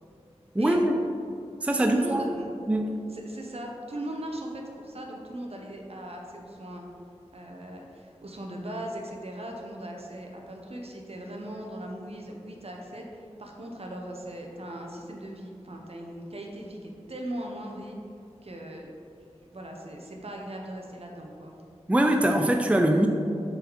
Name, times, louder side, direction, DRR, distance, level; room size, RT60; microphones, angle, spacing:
voice 1, 0.5-1.0 1.6-2.3 2.7-2.9 21.9-23.1, right 1 dB, 10° right, 3 dB, 0.5 m, -22 dB
voice 2, 1.8-2.5 3.1-6.8 7.3-18.0 18.4-18.9 19.5-21.5, right 1 dB, 60° right, 1 dB, 1.0 m, -38 dB
6.4 x 4.1 x 4.7 m, 2.6 s
cardioid pair, 40°, 12 cm